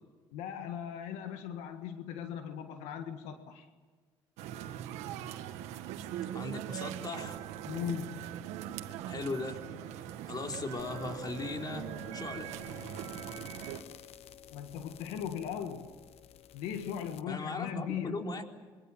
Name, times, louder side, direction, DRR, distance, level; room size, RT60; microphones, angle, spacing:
voice 1, 0.3-3.7 7.6-8.2 14.5-15.9 16.5-18.2, left 8 dB, 85° left, 6 dB, 1.6 m, -38 dB
sound 1, 4.4-13.8, right 11 dB, 85° right, 1.6 m, -41 dB
voice 2, 6.3-7.4 9.0-9.7 10.2-11.9 12.1-12.5 17.3-18.4, left 2 dB, 40° left, 3 dB, 4.2 m, -38 dB
sound 2, 10.8-17.2, left 11 dB, 65° left, 1.0 m, -51 dB
27.0 x 23.0 x 7.5 m, 1.5 s
supercardioid pair, 70°, 11 cm